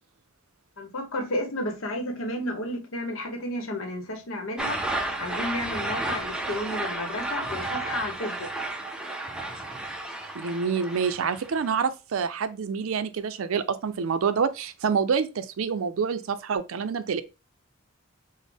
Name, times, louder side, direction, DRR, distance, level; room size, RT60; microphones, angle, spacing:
voice 1, 0.8-4.8 5.2-8.5, left 1 dB, 80° left, 0.9 m, -32 dB
sound 1, 4.6-11.7, right 2 dB, 5° right, 0.4 m, -32 dB
voice 2, 10.3-17.2, right 6 dB, 80° right, 0.4 m, -27 dB
4.0 x 2.0 x 3.3 m
head